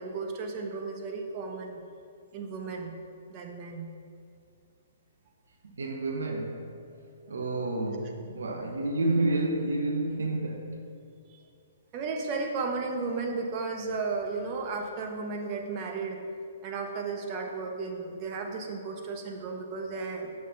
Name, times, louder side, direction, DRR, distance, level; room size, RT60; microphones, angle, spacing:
voice 1, 0.0-1.8 2.3-2.9 3.3-3.9 11.3-11.4 11.9-16.2 16.6-20.3, right 4 dB, 35° right, 2 dB, 1.2 m, -34 dB
voice 2, 5.7-6.7 7.3-10.8, right 2 dB, 75° right, 2 dB, 1.2 m, -29 dB
7.5 x 6.2 x 5.7 m, 2.4 s
hypercardioid pair, 130°, 0 cm